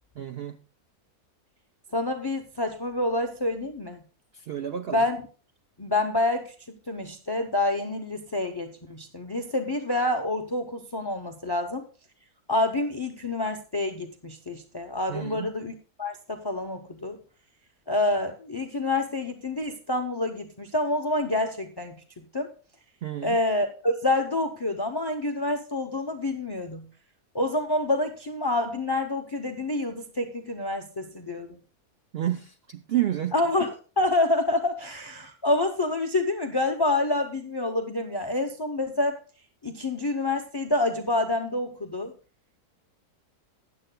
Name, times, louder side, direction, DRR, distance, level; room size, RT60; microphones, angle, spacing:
voice 1, 0.2-0.6 4.3-5.0 15.1-15.5 23.0-23.4 32.1-33.4, right 12 dB, 70° right, 8 dB, 0.6 m, -30 dB
voice 2, 1.9-4.0 4.9-5.3 5.8-6.5 6.9-11.9 12.5-17.2 17.9-22.5 23.2-26.9 27.3-31.6 33.3-33.7 34.0-39.2 39.6-42.1, left 2 dB, 40° left, 5 dB, 0.3 m, -27 dB
15.5 x 10.0 x 2.2 m, 0.37 s
omnidirectional pair, 1.6 m